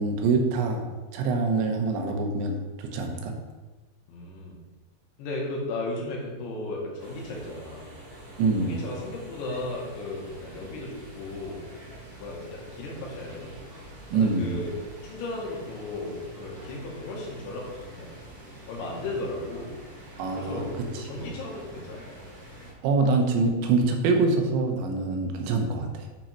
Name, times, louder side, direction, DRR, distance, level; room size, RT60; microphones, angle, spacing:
voice 1, 0.0-3.4 8.4-8.8 14.1-14.6 20.2-21.3 22.8-26.1, right 3 dB, 80° right, 3 dB, 3.3 m, -25 dB
voice 2, 4.1-4.6 5.2-7.9 8.6-11.7 12.2-13.5 14.1-14.7 15.0-18.1 18.7-19.7 20.4-22.0, left 2 dB, 85° left, -2 dB, 4.2 m, -35 dB
sound 1, 7.0-22.7, right 1 dB, 30° right, 2.1 m, -46 dB
10.0 x 5.3 x 4.5 m, 1.2 s
omnidirectional pair, 5.2 m